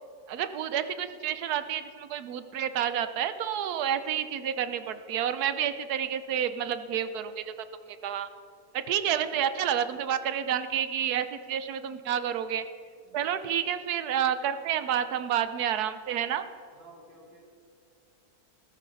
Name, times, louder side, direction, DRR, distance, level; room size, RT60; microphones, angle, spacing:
voice 1, 0.3-7.5 7.8-8.3 8.7-12.6 13.1-16.4, right 9 dB, 85° right, 11 dB, 1.2 m, -29 dB
voice 2, 16.7-17.4, right 2 dB, 40° right, -4 dB, 3.5 m, -54 dB
16.0 x 14.0 x 4.0 m, 2.3 s
omnidirectional pair, 1.6 m